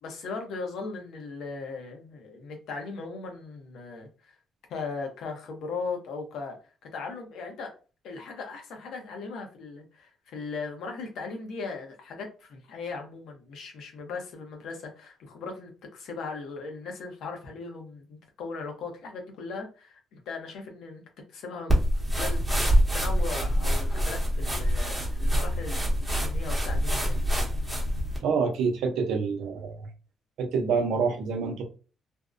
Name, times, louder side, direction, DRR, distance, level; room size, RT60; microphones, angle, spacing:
voice 1, 0.0-4.3 4.7-7.8 8.0-21.0 21.3-27.2, left 4 dB, 80° left, 0.8 m, -38 dB
sound 1, 21.7-28.2, equal, 10° right, 0.9 m, -25 dB
voice 2, 28.2-29.9 30.4-31.6, right 5 dB, 85° right, 0.6 m, -27 dB
2.6 x 2.1 x 2.4 m
cardioid pair, 90°, 0 cm